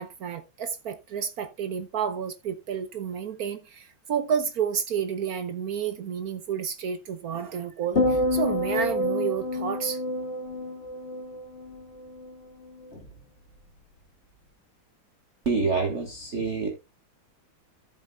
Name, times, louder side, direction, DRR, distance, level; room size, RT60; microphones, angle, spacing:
voice 1, 0.0-10.0, right 7 dB, 65° right, 1.0 m, -30 dB
sound 1, 8.0-12.3 12.6-13.1, left 1 dB, 30° left, 2.1 m, -28 dB
voice 2, 15.4-16.7, right 4 dB, 40° right, 1.6 m, -26 dB
14.0 x 7.7 x 2.3 m
omnidirectional pair, 2.2 m